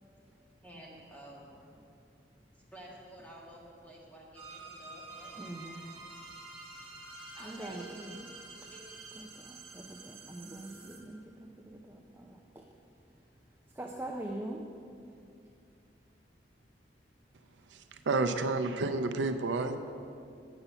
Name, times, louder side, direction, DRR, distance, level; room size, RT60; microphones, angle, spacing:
voice 1, 0.6-1.6 2.7-5.3 5.6-5.8 7.3-8.0 8.7-8.8, right 1 dB, 10° left, -4 dB, 1.5 m, -51 dB
sound 1, 4.3-11.0, right 3 dB, 30° right, 1.3 m, -49 dB
voice 2, 5.4-5.9 7.4-8.3 8.6-8.7 9.1-12.7 13.0-13.1 13.7-14.8, right 1 dB, 15° right, 1 dB, 0.4 m, -43 dB
voice 3, 17.7-19.8, right 3 dB, 90° right, 8 dB, 0.5 m, -30 dB
8.1 x 5.5 x 7.0 m, 2.5 s
head